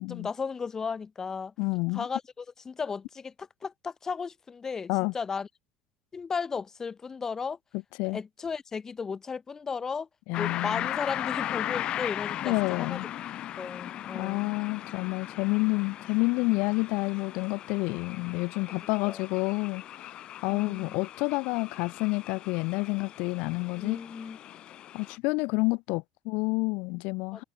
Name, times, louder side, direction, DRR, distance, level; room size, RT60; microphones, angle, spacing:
voice 1, 0.0-1.5 1.9-5.5 6.1-7.6 8.1-10.1 10.4-13.1 13.6-14.5 18.7-18.8 19.0-19.2 20.5-21.0 23.7-24.4 27.3-27.4, left 5 dB, 25° left, 2.1 m, -35 dB
voice 2, 1.6-2.1 4.9-5.1 8.0-8.2 10.3-10.9 12.4-13.1 14.1-24.0 24.9-27.4, left 27 dB, 75° left, 1.3 m, -29 dB
sound 1, 10.3-25.2, left 12 dB, 50° left, 3.0 m, -38 dB
cardioid pair, 120°, 2 cm